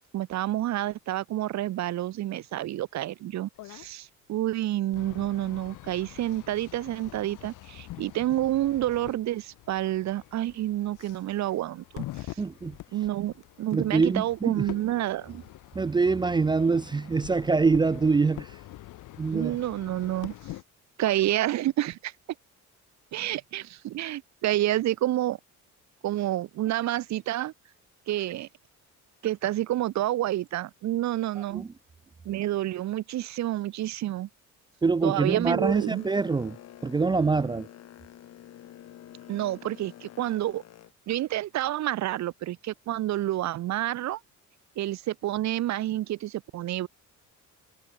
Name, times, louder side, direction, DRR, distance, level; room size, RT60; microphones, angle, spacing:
voice 1, 0.1-12.4 12.9-13.3 13.6-15.4 19.3-20.3 21.0-22.1 23.1-25.4 26.0-27.5 28.1-28.5 29.2-31.6 32.3-34.3 35.0-36.0 39.3-40.6 41.1-44.2 44.8-46.9, right 14 dB, 60° right, 2.0 m, -29 dB
sound 1, 3.6-3.9 4.9-20.6, left 16 dB, 80° left, 3.6 m, -45 dB
voice 2, 12.4-12.8 13.7-14.7 15.7-18.6 19.2-19.6 31.5-31.7 34.8-36.6 36.8-37.7, right 4 dB, 15° right, 0.5 m, -25 dB
Boat Water vehicle, 35.6-40.9, left 12 dB, 55° left, 2.9 m, -48 dB
cardioid pair, 165°, 31 cm